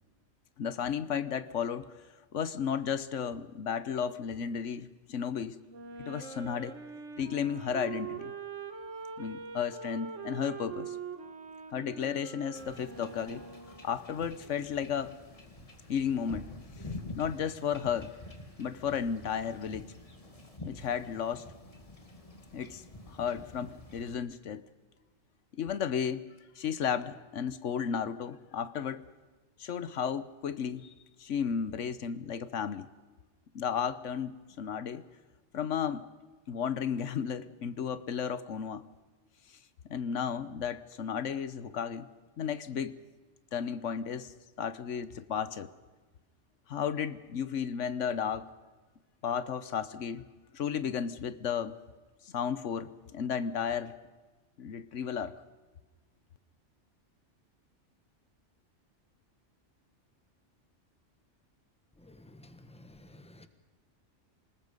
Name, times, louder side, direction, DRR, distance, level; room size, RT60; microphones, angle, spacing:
voice 1, 0.6-1.9 2.3-5.6 6.0-6.8 7.2-8.3 9.2-11.0 11.7-13.4 13.8-15.2 15.9-16.5 17.1-18.1 18.6-19.9 20.6-21.4 22.5-24.6 25.5-26.2 26.6-29.0 29.6-30.9 31.2-32.9 33.5-35.0 35.5-36.1 36.5-38.8 39.9-42.1 42.4-43.0 43.5-44.3 44.6-45.7 46.7-48.5 49.2-50.2 50.5-51.8 52.3-53.9 54.6-55.3, left 7 dB, 80° left, 14 dB, 1.2 m, -33 dB
Wind instrument woodwind instrument, 5.7-14.0, right 6 dB, 75° right, 1.8 m, -43 dB
Wind / Ocean / Boat Water vehicle, 12.5-24.1, left 2 dB, 30° left, 2.1 m, -47 dB
voice 2, 62.0-63.5, left 1 dB, 5° left, 9 dB, 1.3 m, -53 dB
27.5 x 19.5 x 5.3 m, 1.3 s
omnidirectional pair, 1.3 m